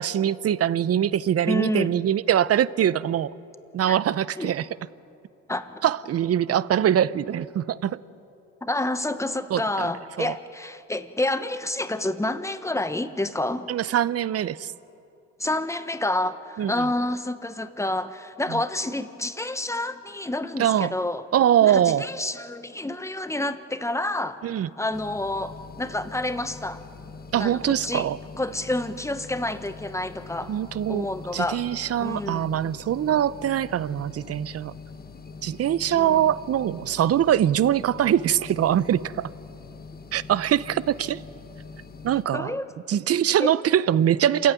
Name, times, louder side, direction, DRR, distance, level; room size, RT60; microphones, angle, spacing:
voice 1, 0.0-3.3 3.7-4.7 5.8-8.0 9.5-9.9 10.2-10.4 13.7-14.7 16.6-16.9 18.5-18.6 20.6-20.9 21.3-22.1 24.4-24.7 27.3-28.2 30.5-31.1 31.3-34.7 35.4-39.3 40.1-41.2 42.0-42.5 42.9-44.5, right 10 dB, 55° right, 18 dB, 0.7 m, -23 dB
voice 2, 1.5-1.9 3.9-4.0 4.4-4.5 5.5-5.8 8.6-13.7 15.4-21.3 21.6-24.4 24.8-26.8 27.3-28.1 28.4-30.5 30.9-31.6 32.0-32.6 35.9-36.3 42.3-42.7 43.4-43.6, left 1 dB, 10° left, 10 dB, 1.2 m, -29 dB
sound 1, 24.9-42.2, left 4 dB, 30° left, 1.4 m, -43 dB
27.0 x 15.0 x 9.4 m, 2.8 s
cardioid pair, 90°, 30 cm